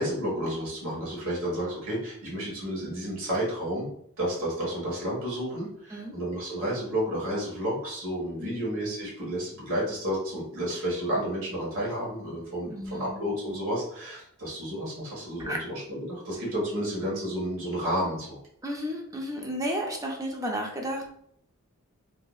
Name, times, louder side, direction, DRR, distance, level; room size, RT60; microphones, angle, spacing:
voice 1, 0.0-3.9 4.2-18.4, equal, 70° right, -5 dB, 1.2 m, -31 dB
voice 2, 12.7-13.2 15.4-15.6 18.6-21.1, equal, 15° right, 1 dB, 0.5 m, -33 dB
2.9 x 2.7 x 2.3 m, 0.69 s
head